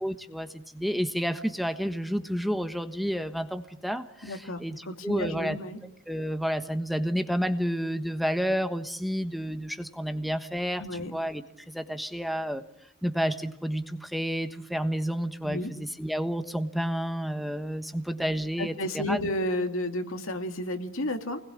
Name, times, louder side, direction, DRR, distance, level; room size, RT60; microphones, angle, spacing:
voice 1, 0.0-5.6 6.1-12.6 13.0-19.2, equal, ahead, 8 dB, 1.3 m, -30 dB
voice 2, 4.2-4.6 4.9-5.8 10.8-11.1 15.4-15.7 18.6-21.4, left 1 dB, 70° left, 6 dB, 2.6 m, -31 dB
29.5 x 20.5 x 8.6 m, 0.80 s
head